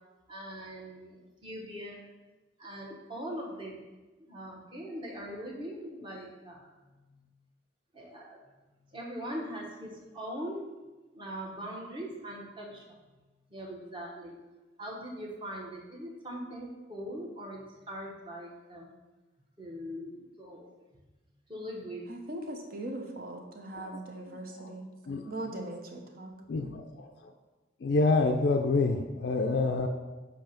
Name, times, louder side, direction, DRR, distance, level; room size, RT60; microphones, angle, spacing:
voice 1, 0.3-2.1 2.6-3.8 4.2-7.2 7.9-8.4 8.9-10.7 11.1-12.8 13.5-14.4 14.8-18.9 19.6-20.7 21.5-22.1, equal, 25° right, -2 dB, 1.1 m, -41 dB
voice 2, 22.1-24.9 25.2-26.3, right 1 dB, 50° right, 2 dB, 0.8 m, -40 dB
voice 3, 26.5-27.1 27.8-29.9, left 3 dB, 60° left, 4 dB, 0.4 m, -27 dB
6.9 x 2.9 x 5.7 m, 1.2 s
head